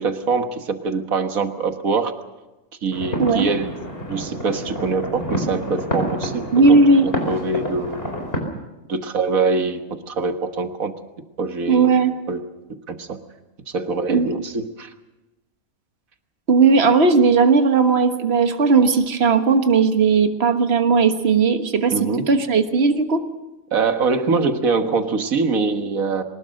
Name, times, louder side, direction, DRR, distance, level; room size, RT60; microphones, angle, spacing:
voice 1, 0.0-2.1 2.8-3.8 4.1-8.0 8.9-10.9 11.4-11.9 12.3-12.4 12.9-13.2 13.7-14.9 21.9-22.3 23.7-26.2, right 4 dB, 85° right, 7 dB, 2.0 m, -23 dB
sound 1, 2.9-8.4, equal, 45° left, 4.6 m, -28 dB
voice 2, 6.5-7.1 11.7-12.1 14.1-14.3 16.5-23.2, right 4 dB, 50° right, 7 dB, 1.7 m, -16 dB
23.5 x 20.0 x 6.5 m, 1.1 s
omnidirectional pair, 1.4 m